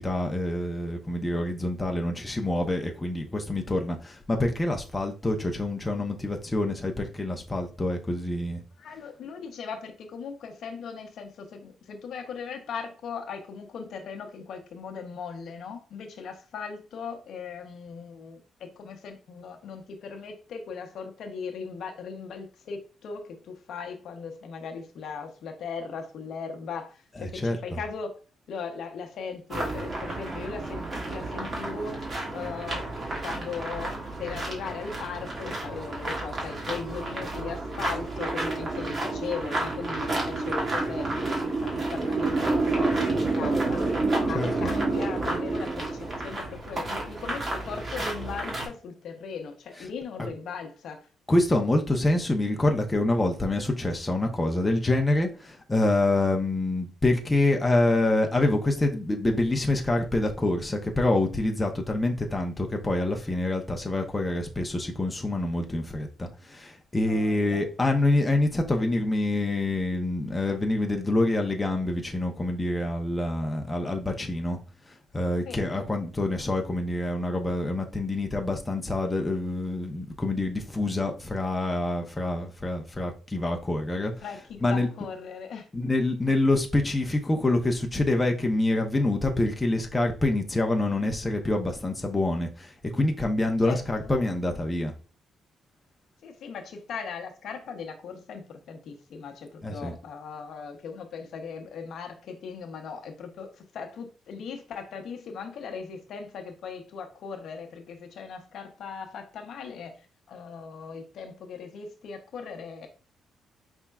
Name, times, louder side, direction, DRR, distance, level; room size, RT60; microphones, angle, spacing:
voice 1, 0.0-8.6 27.1-27.8 44.3-44.7 49.7-49.9 50.2-50.3 51.3-74.6 75.1-84.9 85.7-94.9 99.6-99.9, left 2 dB, 15° left, 0.8 m, -26 dB
voice 2, 8.8-28.2 28.5-32.0 32.3-32.9 33.2-33.9 34.2-43.9 44.2-51.1 67.1-67.7 75.4-75.7 84.2-85.6 93.6-94.1 96.2-109.9 110.3-112.9, left 5 dB, 70° left, 0.8 m, -38 dB
sound 1, 29.5-48.7, right 2 dB, 40° right, 1.9 m, -30 dB
5.4 x 3.5 x 2.3 m
cardioid pair, 90°, 0 cm